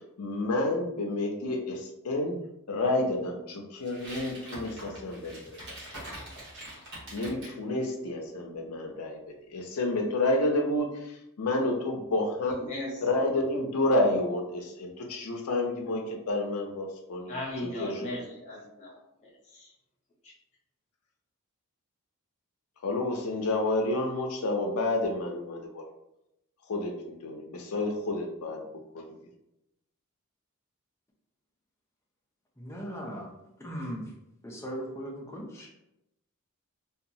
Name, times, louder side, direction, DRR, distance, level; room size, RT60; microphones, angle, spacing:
voice 1, 0.2-2.4 2.7-5.6 7.1-12.7 13.0-17.4 17.8-18.2 22.8-25.8 26.7-28.6 28.9-29.2, left 2 dB, 85° left, 2 dB, 0.5 m, -30 dB
sound 1, 3.8-7.6, right 1 dB, 50° right, 1.2 m, -43 dB
voice 2, 12.5-13.2 17.3-18.9 19.2-19.7 20.2-20.3, left 1 dB, 30° left, -4 dB, 0.9 m, -38 dB
voice 3, 32.6-33.3 33.6-34.0 34.4-35.7, equal, 10° left, -1 dB, 0.5 m, -38 dB
2.8 x 2.3 x 2.6 m, 0.86 s
head